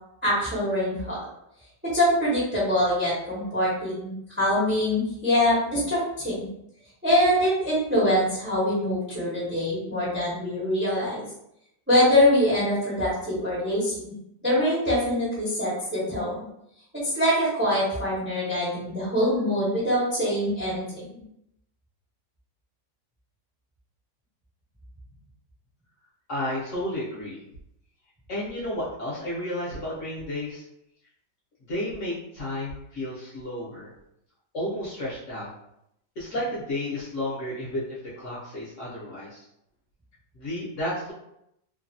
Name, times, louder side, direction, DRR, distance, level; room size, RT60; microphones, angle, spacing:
voice 1, 0.2-1.2 1.9-6.5 7.0-11.2 11.9-14.1 14.4-16.3 17.0-21.2, left 1 dB, 10° right, -8 dB, 0.5 m, -24 dB
voice 2, 26.3-27.4 28.3-30.6 31.7-33.9 34.5-35.5 36.2-39.4 40.3-41.1, left 1 dB, 55° left, -8 dB, 1.0 m, -32 dB
3.0 x 2.3 x 2.6 m, 0.79 s
omnidirectional pair, 1.9 m